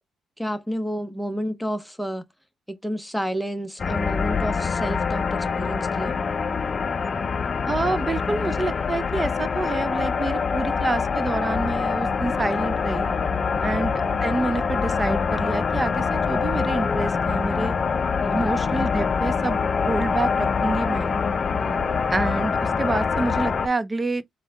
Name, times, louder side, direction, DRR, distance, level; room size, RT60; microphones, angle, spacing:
voice 1, 0.4-2.2 2.7-6.2 13.5-13.9 18.2-18.5 21.6-22.0, equal, ahead, 0.8 m, -31 dB
sound 1, 3.8-23.7, left 5 dB, 40° left, 0.4 m, -25 dB
voice 2, 7.7-13.1 13.6-17.7 18.3-19.6 19.9-21.2 22.1-24.2, right 2 dB, 25° right, 0.5 m, -27 dB
4.4 x 2.2 x 3.3 m
cardioid pair, 90°, 0 cm